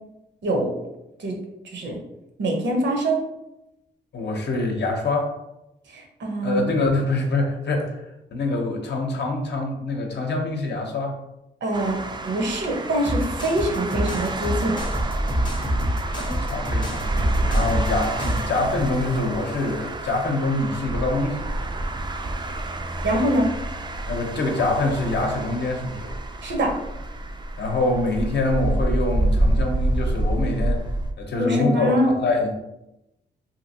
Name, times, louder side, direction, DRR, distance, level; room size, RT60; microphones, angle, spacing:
voice 1, 0.4-0.7 1.2-1.4 1.6-2.0 2.4-3.2 5.9-6.6 11.6-14.7 23.0-23.5 26.4-26.7 31.4-32.1, right 1 dB, 65° right, 2 dB, 0.8 m, -24 dB
voice 2, 4.1-5.3 6.4-8.1 8.3-11.1 16.1-21.4 24.1-26.1 27.6-30.8 31.2-32.6, left 2 dB, 60° left, 2 dB, 0.7 m, -25 dB
sound 1, 11.7-31.1, right 1 dB, 25° right, 0.4 m, -27 dB
sound 2, 13.0-18.5, equal, 25° left, 0.7 m, -27 dB
2.8 x 2.5 x 2.7 m, 0.90 s
supercardioid pair, 55°, 20 cm